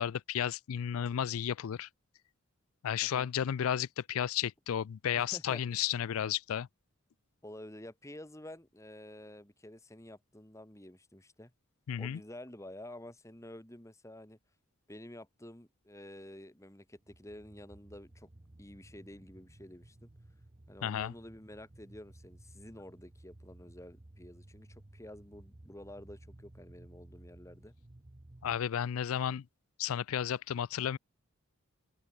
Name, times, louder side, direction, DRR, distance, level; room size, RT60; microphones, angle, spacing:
voice 1, 0.0-1.9 2.8-6.7 11.9-12.2 20.8-21.1 28.4-29.5 29.8-31.0, left 9 dB, 75° left, 0.4 m, -33 dB
voice 2, 5.1-5.6 7.4-11.5 12.0-14.4 14.9-18.3 18.6-20.1 20.7-27.7, left 1 dB, 15° left, 2.1 m, -50 dB
sound 1, 16.9-28.6, right 1 dB, 30° right, 0.9 m, -56 dB
head